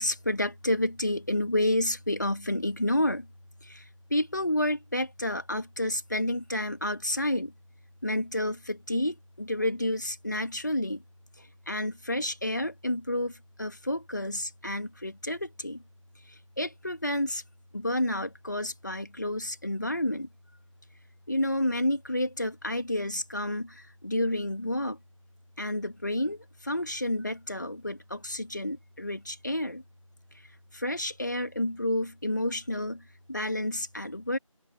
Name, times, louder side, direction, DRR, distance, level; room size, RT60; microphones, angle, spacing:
voice 1, 0.0-3.3 3.6-7.5 8.0-11.0 11.4-15.8 16.3-17.4 17.7-20.3 21.3-25.0 25.6-29.8 30.3-34.4, left 1 dB, 35° left, 2.6 m, -30 dB
figure-of-eight pair, 175°, 17 cm